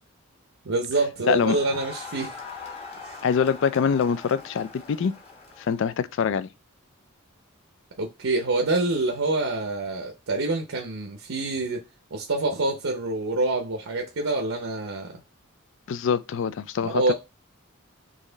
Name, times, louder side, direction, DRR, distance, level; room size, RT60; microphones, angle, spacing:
voice 1, 0.6-2.3 3.0-3.2 8.0-11.8 12.1-15.2 16.8-17.1, right 2 dB, 65° right, 0.7 m, -26 dB
voice 2, 1.2-1.6 3.2-5.1 5.6-6.5 15.9-17.1, left 6 dB, 60° left, 0.4 m, -24 dB
Crowd, 1.2-6.0, left 4 dB, 30° left, 1.0 m, -42 dB
4.1 x 3.1 x 3.8 m
head